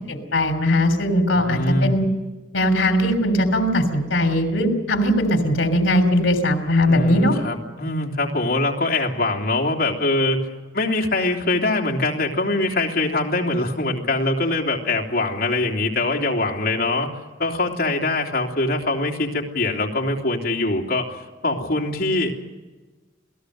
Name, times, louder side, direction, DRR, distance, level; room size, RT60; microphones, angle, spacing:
voice 1, 0.1-2.0 2.5-7.3, left 1 dB, 80° left, 5 dB, 3.2 m, -19 dB
voice 2, 1.3-1.9 6.9-10.5 10.7-17.1 17.4-21.1 21.4-22.4, left 2 dB, 55° left, 1 dB, 3.1 m, -23 dB
28.0 x 18.0 x 6.5 m, 1.3 s
head